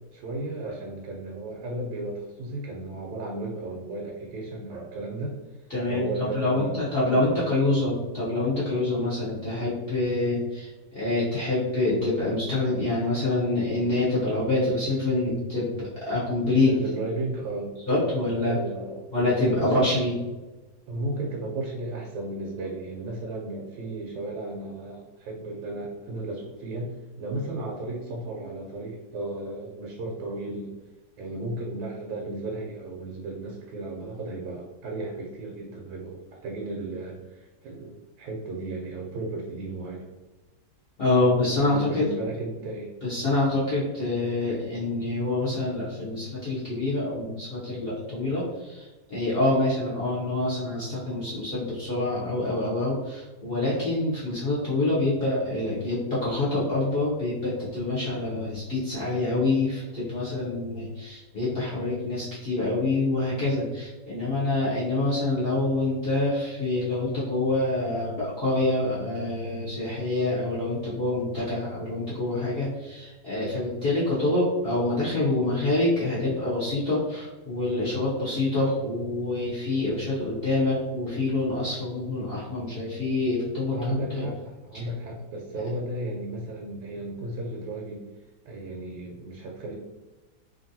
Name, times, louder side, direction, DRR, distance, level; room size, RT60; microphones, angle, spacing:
voice 1, 0.1-7.5 16.6-17.7 18.4-19.1 19.6-19.9 20.9-30.7 31.2-40.1 41.6-42.9 83.7-88.0 88.4-89.7, right 2 dB, 85° right, -1 dB, 1.3 m, -34 dB
voice 2, 5.7-16.7 17.9-18.6 19.1-20.1 41.0-42.0 43.0-84.2 84.7-84.8, left 2 dB, 60° left, -8 dB, 0.6 m, -26 dB
2.9 x 2.5 x 2.6 m, 1.2 s
omnidirectional pair, 2.0 m